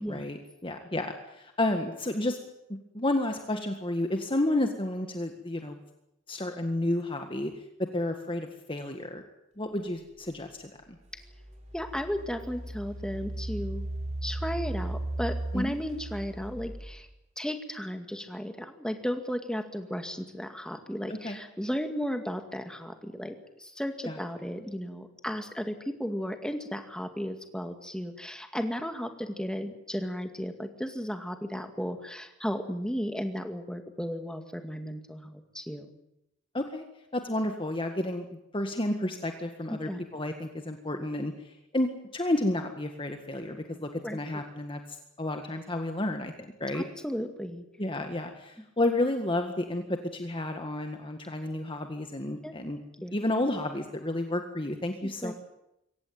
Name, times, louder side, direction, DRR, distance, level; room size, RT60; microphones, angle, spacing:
voice 1, 0.0-2.4 2.7-5.8 6.3-7.5 7.9-9.2 9.6-10.7 15.5-15.7 21.2-21.4 24.1-24.2 36.5-36.8 37.1-46.8 47.8-52.8 53.1-55.3, left 1 dB, 25° left, 5 dB, 1.8 m, -31 dB
Engine, 11.2-17.1, right 1 dB, 35° right, 4.1 m, -36 dB
voice 2, 11.7-13.9 14.2-17.1 17.4-36.0 39.7-40.0 44.0-44.2 46.7-47.6 52.4-52.5 53.0-53.2 55.0-55.3, equal, 5° left, 6 dB, 2.2 m, -35 dB
23.0 x 18.0 x 9.5 m, 0.84 s
head